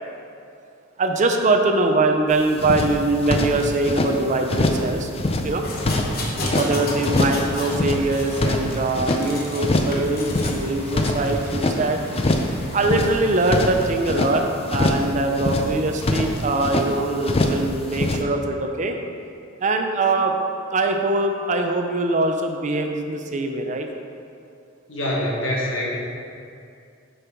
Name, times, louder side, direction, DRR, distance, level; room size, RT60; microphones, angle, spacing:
voice 1, 1.0-5.1 5.4-5.6 6.6-12.0 12.7-18.9 19.6-20.3 20.7-23.9, right 2 dB, 35° right, 4 dB, 0.5 m, -22 dB
sound 1, 2.3-2.4 2.6-4.1 4.5-4.9 5.1-6.7 7.0-7.4 7.7-9.2 9.6-10.0 10.2-11.8 12.1-12.5 12.8-14.3 14.7-15.1 15.3-16.9 17.2-17.6 17.9-18.2, left 2 dB, 30° left, 0.5 m, -23 dB
sound 2, 5.6-7.8 8.1-9.6 9.9-10.6 11.2-11.4, left 2 dB, 50° left, 0.9 m, -33 dB
sound 3, 5.6-13.8, equal, 10° left, 1.5 m, -36 dB
voice 2, 6.3-6.8 24.9-26.0, equal, 65° left, -4 dB, 1.5 m, -26 dB
7.1 x 5.4 x 4.4 m, 2.4 s
head